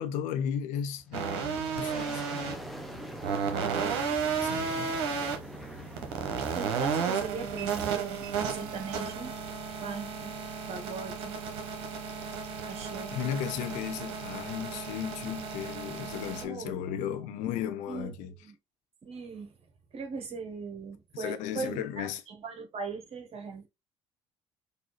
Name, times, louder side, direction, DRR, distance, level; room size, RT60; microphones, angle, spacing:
voice 1, 0.0-2.5 4.4-4.9 13.1-18.3 21.1-22.2, left 9 dB, 65° left, 0.7 m, -35 dB
Boom, 0.9-10.3, equal, ahead, 0.8 m, -45 dB
sound 1, 1.1-16.4, right 6 dB, 75° right, 0.9 m, -33 dB
voice 2, 6.5-9.3 9.8-10.3 10.7-11.4 12.6-13.2 16.4-17.5 17.9-18.5 19.0-19.6 19.9-23.7, right 5 dB, 45° right, 1.3 m, -39 dB
4.0 x 2.6 x 3.1 m
hypercardioid pair, 60°, 14 cm